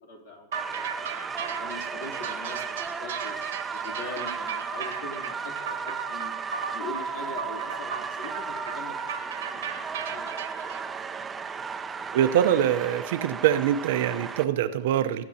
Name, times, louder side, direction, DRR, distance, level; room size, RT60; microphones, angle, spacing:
voice 1, 0.0-1.1 1.4-3.3 3.7-6.3 6.7-10.7, left 3 dB, 75° left, 0 dB, 3.0 m, -42 dB
sound 1, 0.5-14.4, right 6 dB, 20° right, 0.6 m, -35 dB
sound 2, 0.5-10.8, right 7 dB, 85° right, 1.4 m, -36 dB
voice 2, 12.1-15.2, right 10 dB, 70° right, 10 dB, 0.7 m, -24 dB
19.5 x 8.8 x 2.8 m, 0.95 s
hypercardioid pair, 125°, 0 cm